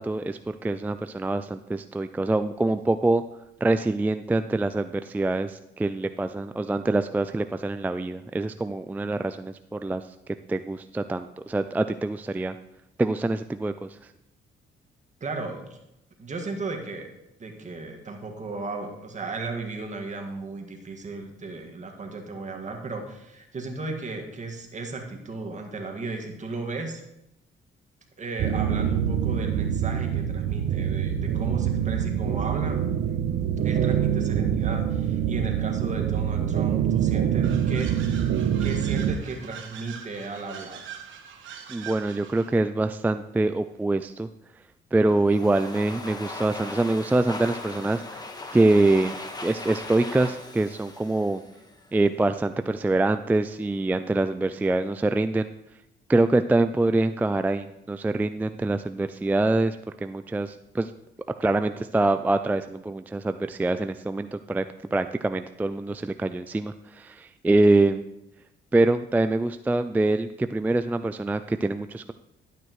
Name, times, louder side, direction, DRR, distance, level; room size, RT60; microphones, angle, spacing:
voice 1, 0.0-3.2 3.6-10.0 10.5-12.5 13.0-13.9 41.7-44.3 44.9-48.2 48.5-49.1 49.4-51.4 51.9-55.5 56.1-60.9 61.4-64.6 64.9-68.0 68.7-72.1, right 2 dB, 10° right, 10 dB, 0.3 m, -25 dB
voice 2, 15.2-15.8 16.2-17.1 17.4-27.0 28.2-32.8 33.6-38.3 38.6-40.9, right 3 dB, 35° right, 2 dB, 1.8 m, -35 dB
sound 1, 28.4-39.1, right 9 dB, 60° right, 0.7 m, -25 dB
sound 2, 37.4-42.6, right 8 dB, 75° right, 1.2 m, -43 dB
Domestic sounds home sounds, 45.1-52.0, left 2 dB, 20° left, 1.3 m, -39 dB
11.5 x 9.2 x 3.1 m, 0.87 s
cardioid pair, 90°, 20 cm